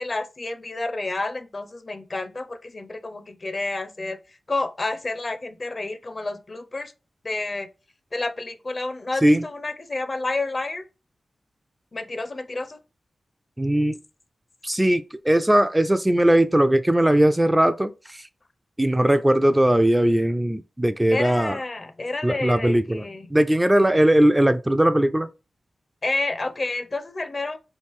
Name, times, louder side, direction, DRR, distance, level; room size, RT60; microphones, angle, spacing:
voice 1, 0.0-4.2 4.5-6.9 7.2-7.7 8.1-10.8 11.9-12.8 21.1-23.3 26.0-27.6, left 2 dB, 45° left, 0.6 m, -30 dB
voice 2, 13.6-14.0 14.6-18.2 18.8-21.6 22.2-25.3, right 1 dB, 15° right, 0.3 m, -19 dB
3.1 x 2.5 x 3.5 m
cardioid pair, 45°, 0 cm